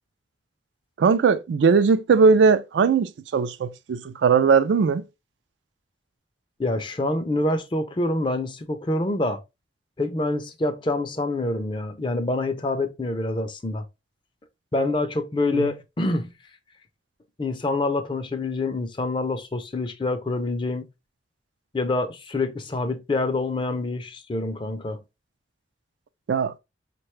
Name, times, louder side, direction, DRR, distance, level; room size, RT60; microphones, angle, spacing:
voice 1, 1.0-5.0 15.5-15.7 26.3-26.5, right 5 dB, 85° right, 0.4 m, -19 dB
voice 2, 6.6-9.4 10.0-13.9 14.7-16.3 17.4-20.9 21.7-25.0, left 2 dB, 30° left, 0.4 m, -26 dB
4.7 x 2.2 x 3.0 m
head